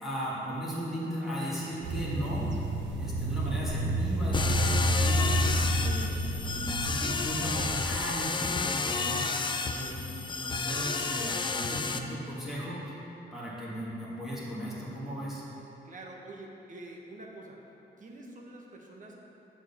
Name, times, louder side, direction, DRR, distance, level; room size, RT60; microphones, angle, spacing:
voice 1, 0.0-2.4 3.0-6.1 6.5-13.0 13.3-15.4, equal, ahead, -9 dB, 1.9 m, -36 dB
sound 1, 1.8-7.8, right 1 dB, 70° right, 0.8 m, -30 dB
sound 2, 4.3-12.0, left 4 dB, 25° left, 0.4 m, -31 dB
voice 2, 15.8-17.6 18.0-19.2, right 2 dB, 40° right, -1 dB, 1.2 m, -46 dB
7.6 x 4.5 x 7.0 m, 2.9 s
wide cardioid pair, 130°, 20 cm